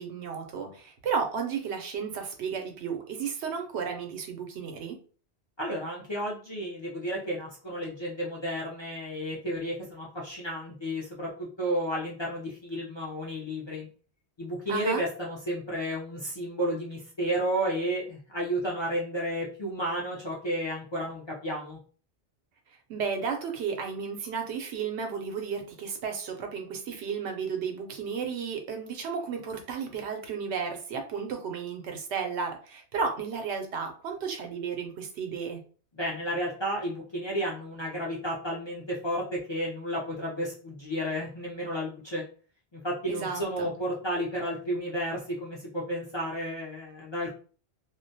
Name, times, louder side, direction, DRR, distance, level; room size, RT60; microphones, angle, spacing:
voice 1, 0.0-5.0 14.7-15.0 22.9-35.6 43.1-43.7, right 6 dB, 90° right, 4 dB, 0.9 m, -33 dB
voice 2, 5.6-13.9 14.4-21.8 36.0-42.2 42.7-47.3, equal, 40° left, -4 dB, 0.4 m, -32 dB
2.3 x 2.1 x 2.6 m, 0.40 s
omnidirectional pair, 1.1 m